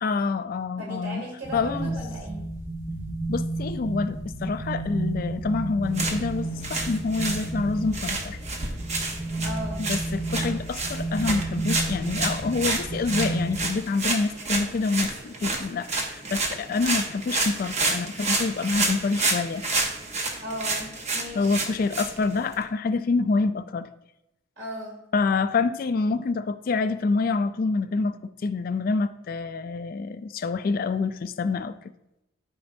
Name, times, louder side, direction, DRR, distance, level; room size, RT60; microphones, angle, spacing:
voice 1, 0.0-1.2 1.5-1.9 3.3-8.4 9.8-19.6 21.4-23.9 25.1-31.9, left 4 dB, 45° left, 12 dB, 0.3 m, -27 dB
voice 2, 0.8-2.4 9.4-9.8 20.4-21.6 24.6-25.0, equal, 70° right, -2 dB, 2.8 m, -36 dB
sound 1, 1.4-13.6, right 2 dB, 10° right, 1.1 m, -32 dB
sound 2, 5.8-22.6, right 3 dB, 35° right, 0.9 m, -30 dB
11.5 x 5.2 x 2.6 m, 0.89 s
head